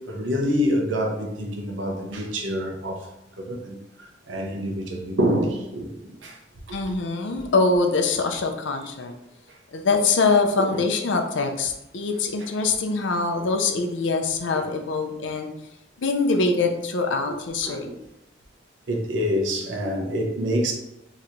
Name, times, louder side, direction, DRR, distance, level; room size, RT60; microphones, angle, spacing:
voice 1, 0.0-3.1 3.4-6.4 9.5-9.6 10.6-10.8 12.4-12.5 17.3-17.4 17.7-17.9 18.9-20.7, equal, 80° right, 0.8 m, -27 dB
voice 2, 6.7-9.1 9.7-15.5 16.0-17.9, left 3 dB, 80° left, 0.5 m, -23 dB
4.4 x 3.0 x 2.6 m
head